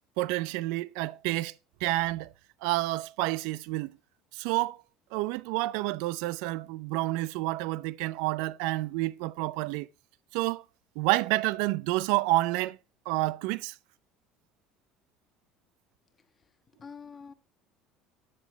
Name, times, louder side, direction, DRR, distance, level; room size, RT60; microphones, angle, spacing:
voice 1, 0.2-1.5 1.8-2.3 2.6-4.0 4.3-4.8 5.1-9.9 10.3-10.6 11.0-12.8 13.1-13.8, right 19 dB, 75° right, 0.4 m, -29 dB
voice 2, 16.2-17.3, left 6 dB, 30° left, 1.3 m, -48 dB
11.0 x 9.6 x 3.4 m
supercardioid pair, 85°, 0 cm